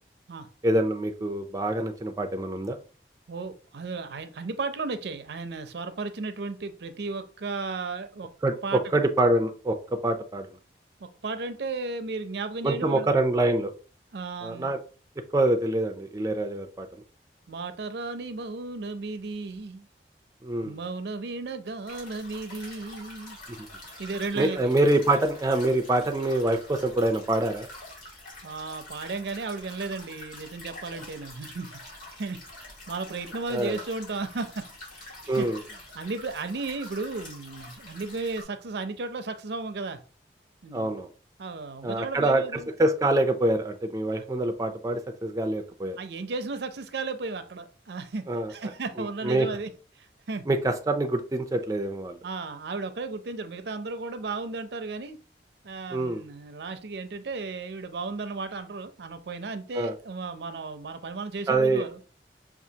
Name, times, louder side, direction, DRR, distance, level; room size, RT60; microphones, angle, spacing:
voice 1, 0.6-2.8 8.4-9.8 10.0-10.5 12.6-13.7 14.4-14.8 15.3-17.0 20.4-20.8 23.5-23.7 24.4-27.7 33.5-33.8 35.3-35.6 40.7-41.1 41.8-46.0 48.3-48.5 49.0-49.5 50.5-52.2 55.9-56.2 59.8-60.0 61.5-61.8, right 1 dB, 20° right, 0.4 m, -25 dB
voice 2, 3.3-8.3 8.6-9.0 11.0-13.1 14.1-14.7 17.5-19.9 20.6-23.4 24.0-24.7 28.4-31.8 32.1-34.7 35.0-40.0 40.6-40.9 41.4-42.7 46.0-49.7 49.9-50.5 52.2-55.2 55.6-62.1, right 3 dB, 70° right, 0.5 m, -34 dB
sound 1, 21.9-38.4, left 1 dB, 50° left, 1.8 m, -46 dB
5.9 x 2.4 x 2.8 m
head